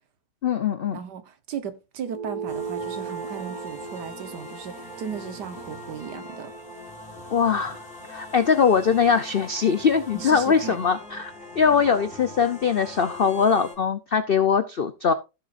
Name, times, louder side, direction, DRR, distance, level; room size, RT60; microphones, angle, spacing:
voice 1, 0.4-1.0 7.3-7.8 8.1-15.1, left 6 dB, 80° left, 0.5 m, -22 dB
voice 2, 0.9-6.5 10.1-10.8 11.6-11.7, right 7 dB, 70° right, 1.7 m, -36 dB
sound 1, 2.0-6.9, right 6 dB, 35° right, 0.8 m, -37 dB
sound 2, 2.5-13.7, left 1 dB, 5° left, 3.6 m, -42 dB
15.5 x 6.4 x 2.5 m
omnidirectional pair, 1.9 m